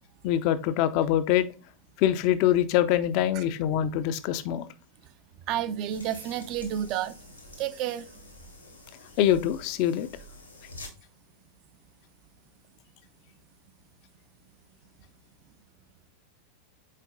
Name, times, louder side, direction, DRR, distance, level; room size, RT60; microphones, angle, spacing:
voice 1, 0.2-1.5 2.0-4.6 9.2-10.1, left 11 dB, 45° left, 0.6 m, -24 dB
voice 2, 5.5-7.1 7.6-8.1, right 10 dB, 40° right, 0.6 m, -30 dB
sound 1, 5.9-10.9, left 1 dB, 85° left, 1.7 m, -48 dB
6.6 x 4.5 x 3.5 m
figure-of-eight pair, 90°, 0 cm